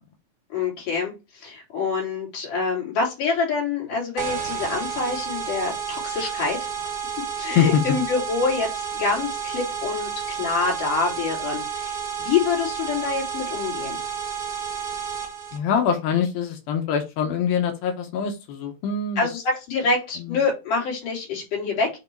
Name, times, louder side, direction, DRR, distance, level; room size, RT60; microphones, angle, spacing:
voice 1, 0.5-6.9 7.4-14.0 19.2-21.9, left 4 dB, 65° left, -3 dB, 4.4 m, -26 dB
sound 1, 4.2-15.6, right 7 dB, 55° right, 1.1 m, -31 dB
voice 2, 15.5-19.3 20.2-20.4, left 7 dB, 80° left, 4 dB, 2.8 m, -24 dB
8.0 x 3.0 x 4.5 m, 0.26 s
omnidirectional pair, 4.1 m